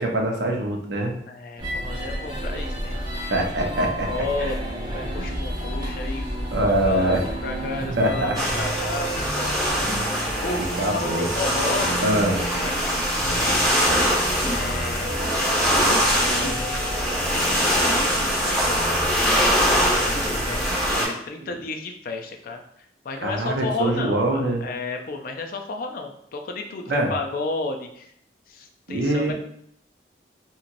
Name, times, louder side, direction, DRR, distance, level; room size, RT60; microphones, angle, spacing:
voice 1, 0.0-1.1 3.3-4.1 4.4-4.5 6.5-7.2 8.0-8.3 10.8-11.3 12.0-12.4 20.9-21.1 23.2-24.6 26.9-27.1 28.9-29.3, right 1 dB, 70° right, 1 dB, 0.6 m, -23 dB
voice 2, 1.3-3.0 4.1-4.6 4.9-6.3 6.8-11.9 12.1-12.2 12.5-13.7 14.4-15.2 16.2-17.4 17.7-28.1 28.5-29.3, left 3 dB, 55° left, 4 dB, 0.4 m, -33 dB
sound 1, 1.6-21.0, equal, 25° right, 0.6 m, -31 dB
sound 2, 8.3-21.1, equal, ahead, 1.5 m, -23 dB
2.9 x 2.7 x 2.6 m, 0.69 s
head